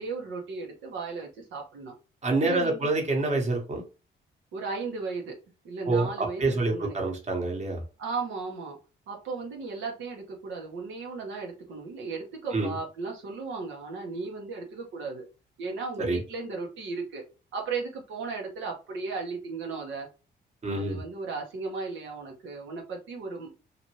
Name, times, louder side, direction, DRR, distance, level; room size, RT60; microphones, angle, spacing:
voice 1, 0.0-1.9 2.4-2.9 4.5-5.4 5.6-7.0 8.0-8.8 9.1-15.3 15.6-17.2 17.5-20.1 20.7-23.6, right 4 dB, 80° right, 1 dB, 1.0 m, -35 dB
voice 2, 2.2-3.8 5.9-7.8 12.5-12.7 16.0-16.2 20.6-21.0, right 2 dB, 35° right, 1 dB, 1.1 m, -27 dB
2.8 x 2.5 x 3.0 m, 0.32 s
cardioid pair, 90°, 20 cm